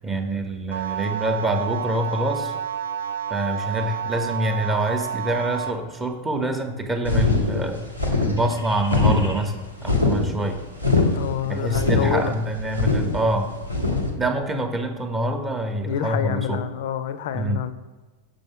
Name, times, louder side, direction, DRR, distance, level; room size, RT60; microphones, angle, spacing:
voice 1, 0.0-2.5 3.3-7.9 8.2-10.6 11.5-13.6 14.2-16.6 17.3-17.6, right 1 dB, 15° right, 5 dB, 0.7 m, -26 dB
sound 1, 0.7-5.7, right 8 dB, 65° right, 0.4 m, -29 dB
sound 2, 7.0-14.1, left 3 dB, 90° right, 1.0 m, -23 dB
voice 2, 11.1-12.4 15.8-17.7, left 9 dB, 55° left, 12 dB, 0.4 m, -27 dB
6.8 x 5.2 x 3.5 m, 1.3 s
figure-of-eight pair, 90°, 0 cm